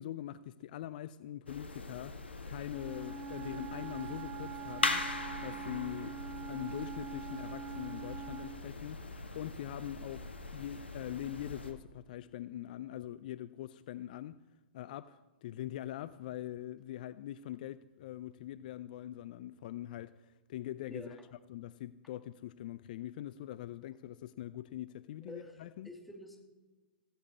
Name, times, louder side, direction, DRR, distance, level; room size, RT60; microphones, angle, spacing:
voice 1, 0.0-2.2 2.5-5.0 5.4-6.2 6.5-9.0 9.3-14.4 14.7-21.2 21.5-25.9, left 12 dB, 50° left, 0.5 m, -43 dB
sound 1, 1.5-11.7, left 3 dB, 90° left, 1.7 m, -41 dB
Wind instrument woodwind instrument, 2.7-8.7, right 7 dB, 25° right, 1.0 m, -44 dB
voice 2, 20.9-21.3 25.2-26.5, equal, ahead, 2.2 m, -49 dB
15.5 x 13.5 x 4.2 m
hypercardioid pair, 115°, 6 cm